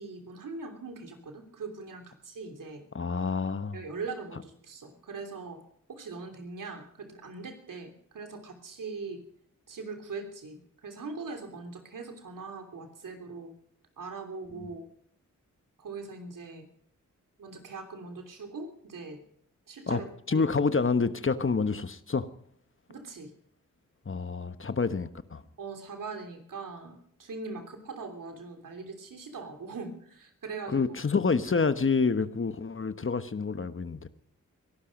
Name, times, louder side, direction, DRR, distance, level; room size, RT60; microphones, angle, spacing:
voice 1, 0.0-2.8 3.7-5.6 5.9-9.2 9.7-13.5 14.0-14.9 15.8-16.6 17.4-19.2 19.7-20.0 20.3-20.4 22.9-23.3 25.6-30.9, right 4 dB, 75° right, 4 dB, 3.2 m, -41 dB
voice 2, 2.9-3.8 14.6-14.7 19.9-20.0 20.3-22.3 24.1-25.4 30.7-34.1, left 4 dB, 40° left, 12 dB, 1.2 m, -28 dB
22.0 x 12.0 x 5.3 m, 0.69 s
cardioid pair, 45°, 33 cm